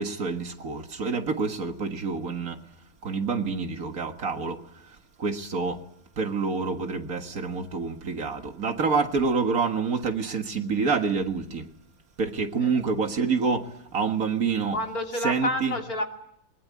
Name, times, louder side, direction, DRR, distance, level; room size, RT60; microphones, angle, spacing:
voice 1, 0.0-2.6 3.0-4.6 5.2-5.8 6.2-11.6 12.2-13.6 13.9-14.8 15.2-15.7, right 4 dB, 60° right, 2.1 m, -27 dB
voice 2, 14.7-16.0, left 1 dB, 65° left, 3.2 m, -29 dB
21.0 x 20.5 x 9.5 m
omnidirectional pair, 1.7 m